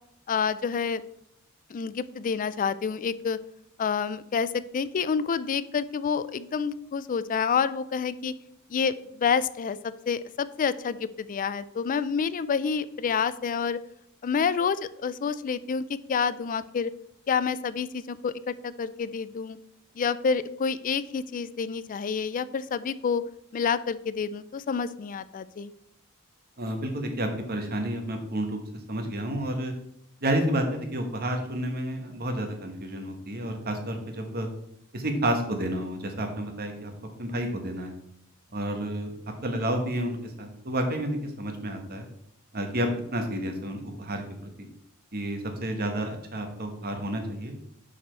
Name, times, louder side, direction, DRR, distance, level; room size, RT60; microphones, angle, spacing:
voice 1, 0.3-1.0 1.7-3.4 3.8-8.3 8.7-9.8 10.1-13.8 14.2-16.9 17.3-19.6 20.0-23.3 23.5-25.7, left 6 dB, 40° left, 15 dB, 0.3 m, -28 dB
voice 2, 26.6-28.6 28.9-29.7 30.2-34.5 34.9-36.9 37.2-37.9 38.5-39.1 39.4-42.1 42.5-44.7 45.1-47.5, right 1 dB, 45° right, 5 dB, 1.2 m, -30 dB
6.7 x 5.0 x 4.5 m, 0.74 s
head